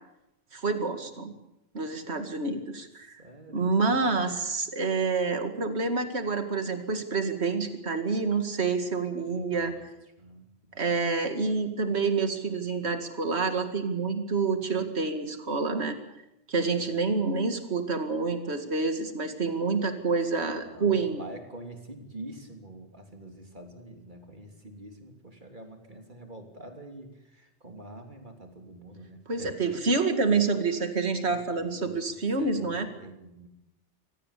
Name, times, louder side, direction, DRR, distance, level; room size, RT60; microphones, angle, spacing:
voice 1, 0.5-1.3 1.7-3.2 3.5-9.7 10.8-16.0 16.5-21.2 29.3-32.9, right 4 dB, 65° right, 7 dB, 2.4 m, -28 dB
voice 2, 3.2-4.1 9.3-9.9 10.2-11.0 16.7-17.0 20.5-29.6 31.2-33.5, right 1 dB, 40° right, 4 dB, 3.4 m, -46 dB
25.5 x 17.5 x 8.4 m, 0.88 s
omnidirectional pair, 1.2 m